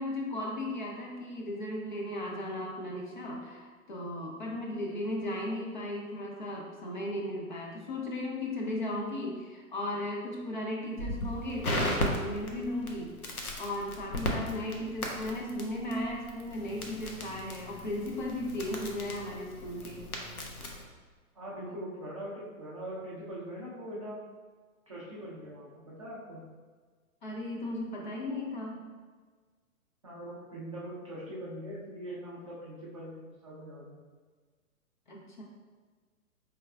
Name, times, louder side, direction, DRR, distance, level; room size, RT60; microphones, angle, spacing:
voice 1, 0.0-13.1 13.6-20.1 27.2-28.8 35.1-35.4, left 1 dB, 35° left, -1 dB, 0.5 m, -36 dB
Crackle, 11.0-20.8, left 1 dB, 85° left, 0.8 m, -37 dB
voice 2, 21.3-24.2 24.9-26.4 30.0-34.0, equal, 25° right, -7 dB, 0.4 m, -42 dB
4.5 x 3.4 x 2.3 m, 1.5 s
figure-of-eight pair, 115°, 43 cm